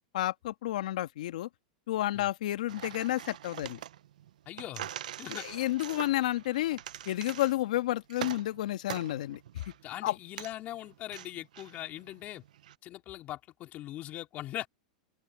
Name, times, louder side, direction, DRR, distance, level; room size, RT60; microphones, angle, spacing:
voice 1, 0.1-1.5 1.9-3.8 5.3-6.8 7.0-9.6 10.0-10.1, left 15 dB, 75° left, 1.6 m, -31 dB
sound 1, 2.7-12.7, right 11 dB, 80° right, 0.8 m, -44 dB
voice 2, 4.5-4.9 5.2-5.5 9.8-12.4 12.8-14.7, left 14 dB, 40° left, 3.4 m, -41 dB
open air
hypercardioid pair, 125°, 4 cm